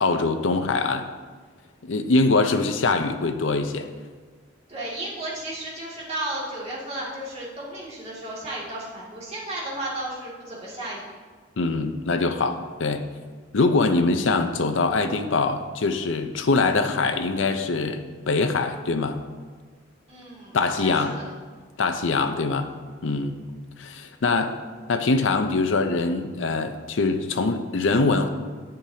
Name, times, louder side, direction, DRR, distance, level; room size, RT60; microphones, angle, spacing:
voice 1, 0.0-1.1 1.8-3.9 11.6-13.1 13.5-19.2 20.5-21.2 21.8-22.7 23.0-23.4 23.8-24.6 24.9-28.3, left 3 dB, 75° left, 7 dB, 0.6 m, -23 dB
voice 2, 4.7-11.0 20.1-21.3 21.9-22.1, right 1 dB, 35° right, -6 dB, 2.3 m, -34 dB
10.5 x 7.8 x 2.8 m, 1.5 s
head